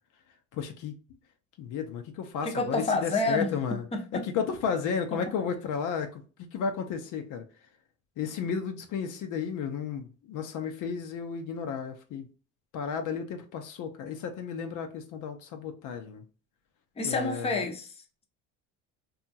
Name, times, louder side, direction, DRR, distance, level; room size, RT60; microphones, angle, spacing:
voice 1, 0.5-0.9 1.6-3.8 4.1-7.4 8.2-12.3 12.7-16.2 17.0-17.7, left 6 dB, 60° left, 0.6 m, -33 dB
voice 2, 2.4-3.5 3.9-4.2 5.1-5.2 17.0-18.2, left 2 dB, 15° left, 0.7 m, -29 dB
2.8 x 2.3 x 2.6 m
supercardioid pair, 90°, 36 cm